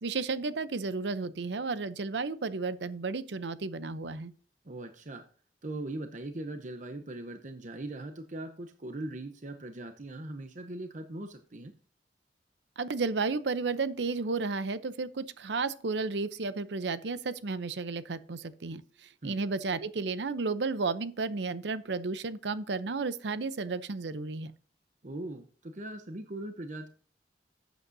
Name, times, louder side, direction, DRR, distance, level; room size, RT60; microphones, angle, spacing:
voice 1, 0.0-4.3 12.8-24.5, right 4 dB, 85° right, 0.7 m, -33 dB
voice 2, 4.6-5.3 5.6-11.7 19.2-19.4 25.0-26.9, right 2 dB, 45° right, 0.8 m, -40 dB
12.0 x 8.2 x 2.7 m
head